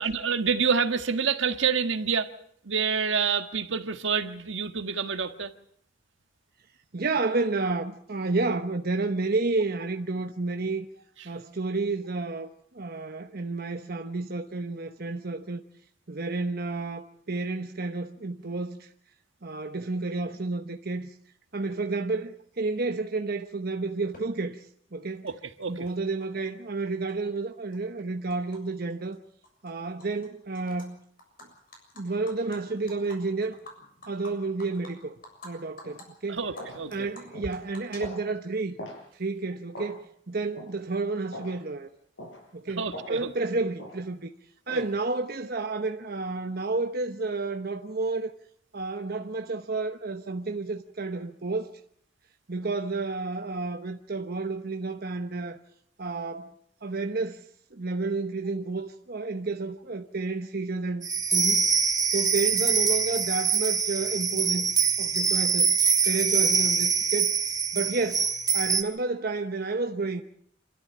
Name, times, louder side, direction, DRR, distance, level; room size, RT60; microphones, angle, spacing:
voice 1, 0.0-2.3 2.6-5.5 25.2-25.8 36.3-36.9 42.8-43.3 44.7-44.8, right 6 dB, 75° right, 1.6 m, -27 dB
voice 2, 6.9-10.9 11.2-15.6 16.1-18.9 19.4-21.1 21.5-25.3 25.7-29.2 29.6-31.0 32.0-33.6 34.1-35.1 35.4-36.4 36.9-38.8 39.1-41.9 42.5-44.3 44.7-48.3 48.7-51.8 52.5-55.6 56.0-56.5 56.8-61.7 62.1-64.7 65.0-65.8 66.0-67.4 67.7-70.2, right 3 dB, 50° right, 1.0 m, -31 dB
Animal, 24.1-24.2 25.3-25.4 25.6-26.5 26.8-28.6 28.9-29.1 29.4-30.3 30.5-30.9 31.2-35.5 35.8-36.0 36.4-38.5, left 1 dB, 50° left, 7.1 m, -49 dB
sound 1, 35.8-36.0 36.6-36.8 37.3-37.6 38.0-38.2 38.8-39.0 39.7-40.0 40.6-40.7 41.3-41.6 42.2-42.4 42.9-43.2 43.8-44.0 44.7-44.9, left 1 dB, 75° left, 7.0 m, -41 dB
sound 2, 61.0-68.8, right 6 dB, 20° right, 1.8 m, -24 dB
27.0 x 13.5 x 8.7 m
head